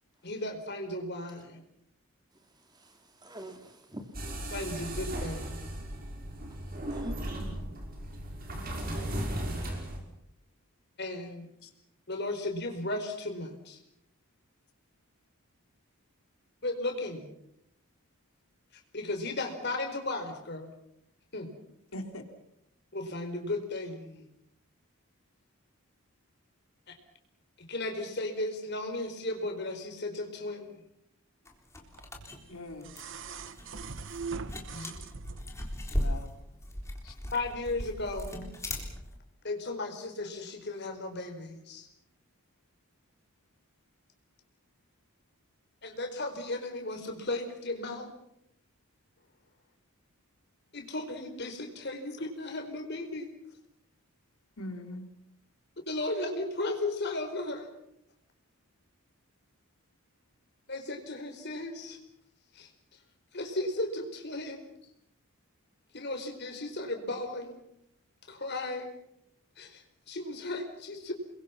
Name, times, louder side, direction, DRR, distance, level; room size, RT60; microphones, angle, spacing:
voice 1, 0.2-1.6 4.5-5.7 11.0-11.5 12.1-13.8 16.6-17.3 18.7-20.7 21.3-21.5 22.9-24.2 26.9-27.0 27.6-30.8 34.7-35.0 37.3-38.4 39.4-41.9 45.8-48.1 50.7-53.3 55.9-57.7 60.7-62.0 62.5-62.7 63.3-64.6 65.9-67.6 68.3-68.9 69.6-71.1, left 2 dB, 50° left, 4.6 m, -35 dB
voice 2, 2.3-4.5 6.4-7.2, equal, 20° right, 2.4 m, -47 dB
sound 1, 4.1-10.0, right 1 dB, 40° right, 5.7 m, -36 dB
voice 3, 21.9-22.3 32.5-32.9 34.8-34.9 35.9-36.3 37.0-37.2 54.6-55.1, left 1 dB, 80° left, 3.4 m, -41 dB
sound 2, 31.5-39.2, left 1 dB, 15° left, 3.8 m, -37 dB
sound 3, 32.0-35.8 37.0-37.1, right 4 dB, 55° right, 1.0 m, -41 dB
29.0 x 22.5 x 5.9 m
head